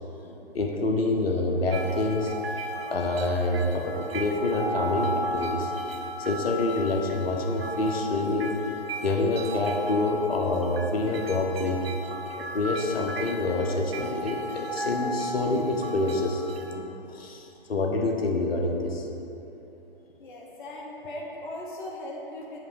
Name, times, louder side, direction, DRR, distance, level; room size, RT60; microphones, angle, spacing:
voice 1, 0.2-2.3 2.9-5.7 6.2-8.6 9.0-11.8 12.4-19.0, left 2 dB, 80° left, 1 dB, 0.8 m, -27 dB
sound 1, 1.7-16.8, right 1 dB, 75° right, 0.6 m, -35 dB
voice 2, 20.2-22.6, left 1 dB, 55° left, -2 dB, 1.0 m, -38 dB
7.6 x 2.8 x 4.7 m, 3.0 s
figure-of-eight pair, 135°, 30 cm